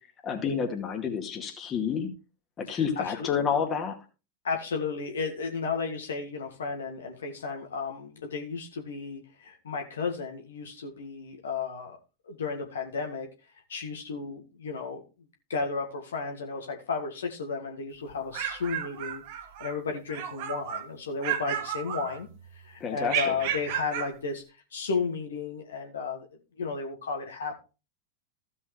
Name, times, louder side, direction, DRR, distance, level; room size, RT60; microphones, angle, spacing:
voice 1, 0.2-2.1 2.6-4.0 22.8-23.2, left 7 dB, 25° left, 4 dB, 2.1 m, -29 dB
voice 2, 2.7-3.3 4.4-12.0 12.3-13.3 13.7-15.0 15.5-19.2 19.6-22.3 22.6-24.4 24.7-26.3 26.6-27.6, left 4 dB, 65° left, 3 dB, 1.7 m, -33 dB
sound 1, 18.1-19.8 20.1-20.9 21.2-22.5 23.1-24.2, right 10 dB, 50° right, 1.1 m, -33 dB
15.5 x 5.5 x 3.3 m, 0.30 s
figure-of-eight pair, 90°, 0 cm